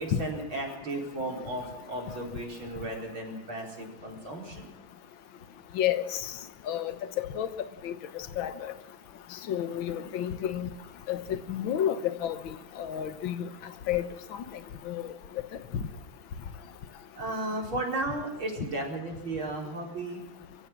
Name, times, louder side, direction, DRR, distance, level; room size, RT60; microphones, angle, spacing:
voice 1, 0.0-4.7 17.2-20.2, right 2 dB, 80° right, 0 dB, 5.3 m, -34 dB
voice 2, 6.7-7.5 7.8-7.9 8.4-8.7 9.5-10.7 11.1-12.4 12.8-13.5 13.9-14.0 14.9-15.0, left 11 dB, 75° left, 10 dB, 1.9 m, -30 dB
23.5 x 16.0 x 7.4 m, 0.84 s
omnidirectional pair, 2.2 m